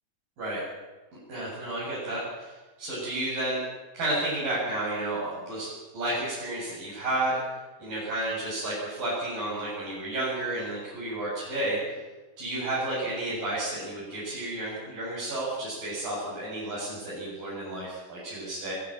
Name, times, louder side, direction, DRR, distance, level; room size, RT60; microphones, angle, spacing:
voice 1, 1.3-3.6 3.9-5.7 5.9-7.4 7.8-12.0 12.4-18.7, right 1 dB, 75° right, -9 dB, 9.8 m, -31 dB
24.0 x 16.5 x 9.1 m, 1.2 s
omnidirectional pair, 3.9 m